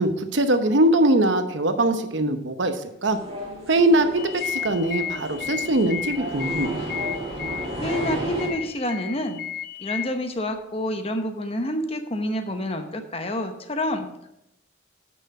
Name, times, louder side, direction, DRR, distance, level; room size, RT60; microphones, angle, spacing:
voice 1, 0.0-3.2 3.7-6.8, right 1 dB, 75° right, 8 dB, 0.9 m, -22 dB
sound 1, 3.1-8.5, right 1 dB, 30° right, 1.9 m, -33 dB
sound 2, 4.2-10.1, left 10 dB, 50° left, 0.5 m, -33 dB
voice 2, 7.8-9.4 9.8-14.3, left 1 dB, 30° left, 6 dB, 0.9 m, -28 dB
9.3 x 6.2 x 4.8 m, 0.83 s
head